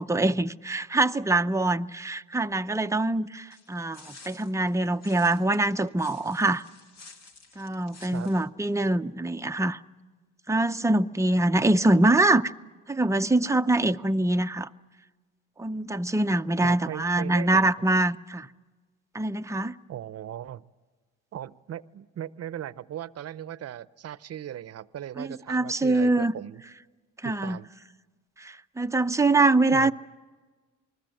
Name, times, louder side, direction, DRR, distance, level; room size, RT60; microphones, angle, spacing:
voice 1, 0.0-6.6 7.6-9.8 10.5-12.5 12.9-14.7 15.6-18.5 19.1-19.7 25.2-26.3 27.2-27.6 28.4-29.9, right 2 dB, 10° right, 0.7 m, -24 dB
sound 1, 3.5-8.5, left 3 dB, 60° left, 2.5 m, -52 dB
voice 2, 16.6-17.6 19.9-20.6 21.3-26.6 27.2-27.7 29.7-29.9, right 11 dB, 55° right, 0.8 m, -38 dB
27.5 x 20.5 x 7.8 m
cardioid pair, 90°, 30 cm